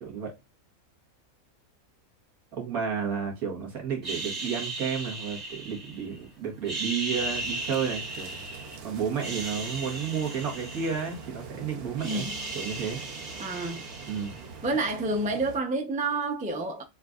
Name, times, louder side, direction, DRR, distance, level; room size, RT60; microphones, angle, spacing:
voice 1, 0.0-0.3 2.5-8.4 8.8-12.3 12.5-13.0 14.1-14.4, right 7 dB, 85° right, 1.9 m, -32 dB
sound 1, 4.0-6.2 6.6-8.8 9.1-11.5 11.8-14.6, right 2 dB, 30° right, 1.0 m, -37 dB
sound 2, 7.1-15.6, right 5 dB, 55° right, 0.7 m, -44 dB
voice 2, 12.0-12.5 13.4-13.8 14.6-16.8, right 2 dB, 10° right, 0.3 m, -29 dB
6.4 x 2.5 x 2.4 m
omnidirectional pair, 1.5 m